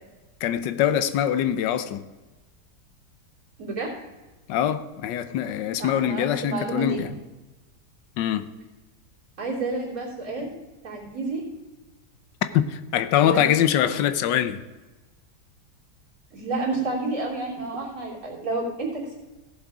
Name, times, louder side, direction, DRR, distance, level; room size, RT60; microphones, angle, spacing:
voice 1, 0.4-2.0 4.5-7.1 8.2-8.5 12.5-14.6, left 10 dB, 85° left, 1.4 m, -23 dB
voice 2, 5.8-7.2 9.4-10.5 10.8-11.4 13.2-13.5 13.9-14.0 16.3-19.2, right 3 dB, 50° right, 3.6 m, -30 dB
15.5 x 7.5 x 4.9 m
omnidirectional pair, 1.9 m